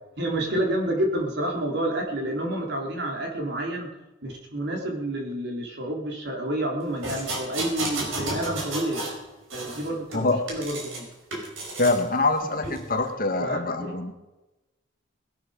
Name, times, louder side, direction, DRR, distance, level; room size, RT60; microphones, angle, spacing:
voice 1, 0.2-3.9 4.2-9.0 9.5-11.1 13.4-14.0, right 1 dB, 55° right, 0 dB, 3.9 m, -29 dB
sound 1, 7.0-9.2 9.5-11.0 11.3-12.0 12.6-12.8, right 2 dB, 80° right, 5.2 m, -32 dB
voice 2, 11.8-14.1, left 2 dB, 45° left, 6 dB, 1.6 m, -24 dB
19.5 x 12.0 x 5.2 m, 1.0 s
head